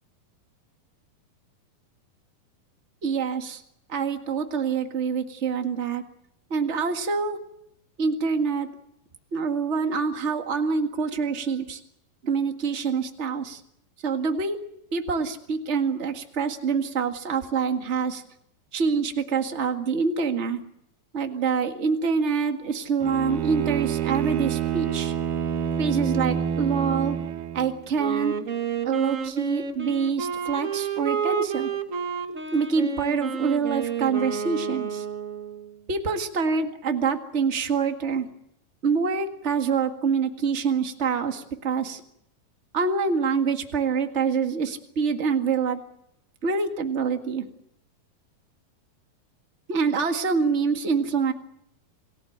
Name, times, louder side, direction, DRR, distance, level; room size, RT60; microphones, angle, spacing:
voice 1, 3.0-3.6 3.9-6.0 6.5-7.4 8.0-8.7 9.3-11.8 12.2-13.6 14.0-14.6 14.9-18.2 18.7-20.6 21.1-25.1 25.8-27.2 27.5-28.3 28.8-31.7 32.5-35.0 35.9-38.3 38.8-42.0 42.7-45.8 46.4-47.5 49.7-51.3, right 5 dB, 30° right, 5 dB, 1.3 m, -26 dB
Bowed string instrument, 23.0-27.9, right 8 dB, 90° right, 3.2 m, -27 dB
Wind instrument woodwind instrument, 28.0-35.7, right 7 dB, 70° right, 0.7 m, -30 dB
27.5 x 18.0 x 7.9 m, 0.79 s
omnidirectional pair, 4.0 m